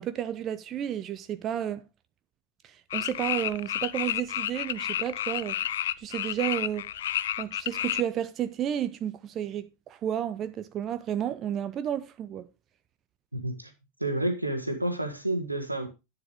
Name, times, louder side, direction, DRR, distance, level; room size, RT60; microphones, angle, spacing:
voice 1, 0.0-1.8 2.6-6.9 7.4-12.5, right 10 dB, 30° right, 0.6 m, -32 dB
sound 1, 2.9-8.0, left 11 dB, 60° left, 0.5 m, -31 dB
voice 2, 13.3-13.7 14.0-15.9, right 1 dB, 85° right, 1.6 m, -30 dB
11.0 x 9.6 x 3.2 m
figure-of-eight pair, 90°, 0 cm